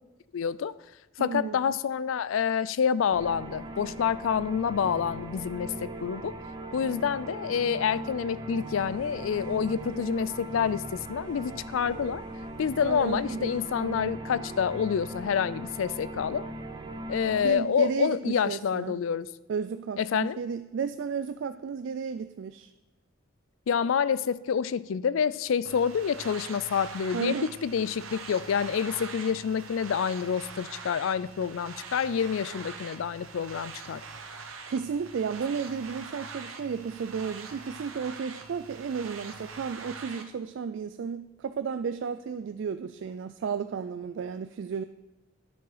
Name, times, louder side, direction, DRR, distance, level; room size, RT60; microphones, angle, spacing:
voice 1, 0.3-0.8 1.2-6.4 6.7-12.2 12.6-16.4 17.1-19.3 20.0-20.4 23.7-34.0, left 7 dB, 75° left, 17 dB, 0.4 m, -28 dB
voice 2, 1.2-1.8 12.8-14.2 17.4-19.0 19.5-22.7 27.1-27.5 34.7-44.8, right 6 dB, 60° right, 11 dB, 0.3 m, -33 dB
sound 1, 3.1-17.5, right 1 dB, 20° right, 0.7 m, -39 dB
sound 2, 8.6-13.8, equal, 40° left, 2.4 m, -58 dB
sound 3, 25.7-40.2, right 4 dB, 85° right, 1.0 m, -43 dB
10.0 x 6.1 x 4.9 m, 1.1 s
head